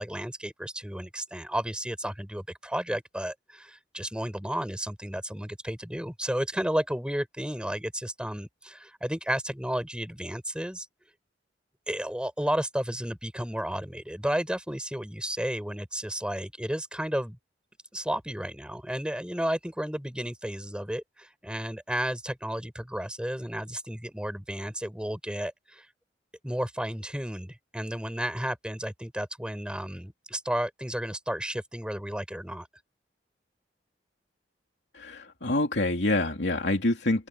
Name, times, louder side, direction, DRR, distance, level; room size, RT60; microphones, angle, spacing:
voice 1, 0.0-10.9 11.9-17.4 17.9-25.9 26.4-32.7, equal, 5° right, 4.7 m, -32 dB
voice 2, 34.9-37.3, left 2 dB, 70° left, 2.9 m, -26 dB
open air
head